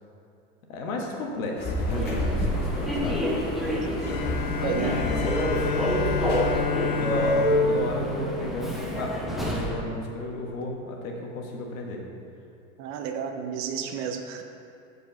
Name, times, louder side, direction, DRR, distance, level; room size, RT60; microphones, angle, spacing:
voice 1, 0.7-3.3 4.5-6.1 6.5-12.0, left 2 dB, 70° left, 1 dB, 1.3 m, -34 dB
sound 1, 1.6-6.6, left 2 dB, 25° left, 0.9 m, -32 dB
Human voice / Subway metro underground, 1.8-9.8, equal, ahead, 0.7 m, -27 dB
Bowed string instrument, 4.0-9.5, left 7 dB, 85° left, 0.6 m, -31 dB
voice 2, 4.6-5.0 12.8-14.4, right 7 dB, 40° right, 5 dB, 0.6 m, -31 dB
4.9 x 4.6 x 6.2 m, 2.5 s
hypercardioid pair, 105°, 42 cm